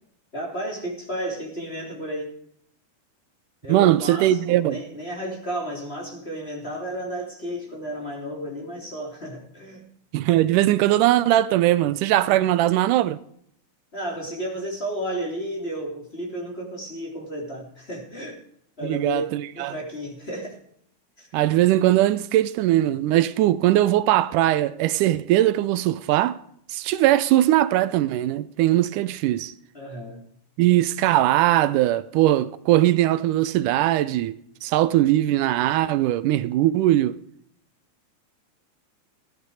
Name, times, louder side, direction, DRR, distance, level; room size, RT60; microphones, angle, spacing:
voice 1, 0.3-2.3 3.6-9.9 13.9-18.4 18.8-20.6 21.2-21.3 29.7-30.2, right 1 dB, 20° left, 3.2 m, -32 dB
voice 2, 3.7-4.8 10.1-13.2 18.8-19.7 21.3-26.4 26.7-29.5 30.6-34.4 34.6-37.2, right 14 dB, 85° right, 2.2 m, -20 dB
15.5 x 10.5 x 4.8 m
omnidirectional pair, 3.6 m